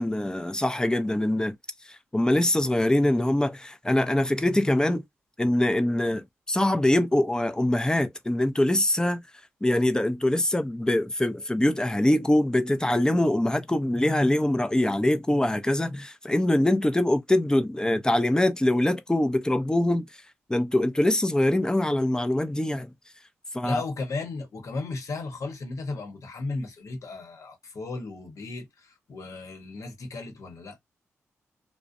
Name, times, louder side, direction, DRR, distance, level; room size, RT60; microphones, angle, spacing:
voice 1, 0.0-1.5 2.1-5.0 5.4-9.2 9.6-20.0 20.5-22.9 23.5-23.8, left 1 dB, 15° left, 0.5 m, -23 dB
voice 2, 23.6-30.8, left 3 dB, 70° left, 0.9 m, -35 dB
2.4 x 2.1 x 2.5 m
supercardioid pair, 50°, 6 cm